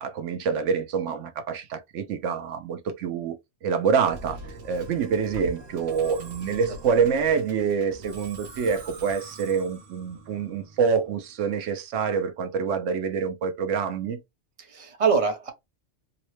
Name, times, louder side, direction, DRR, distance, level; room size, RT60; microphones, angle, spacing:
voice 1, 0.0-4.4 4.6-14.2, right 6 dB, 85° right, 1.0 m, -26 dB
Musical instrument, 4.1-11.4, right 2 dB, 65° right, 1.1 m, -43 dB
voice 2, 6.5-7.1 14.6-15.5, right 5 dB, 30° right, 0.9 m, -26 dB
3.8 x 2.1 x 3.1 m
omnidirectional pair, 1.2 m